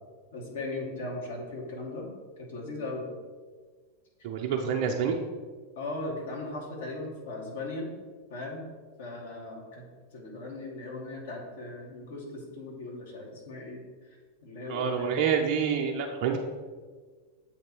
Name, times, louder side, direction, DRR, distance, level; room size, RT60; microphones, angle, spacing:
voice 1, 0.3-2.1 2.4-3.1 5.8-7.9 8.3-8.6 9.0-9.9 10.1-13.8 14.4-15.1, left 2 dB, 60° left, -1 dB, 1.3 m, -38 dB
voice 2, 4.2-5.2 14.7-16.4, right 7 dB, 45° right, 1 dB, 0.5 m, -27 dB
7.6 x 3.0 x 4.3 m, 1.5 s
figure-of-eight pair, 90°, 0 cm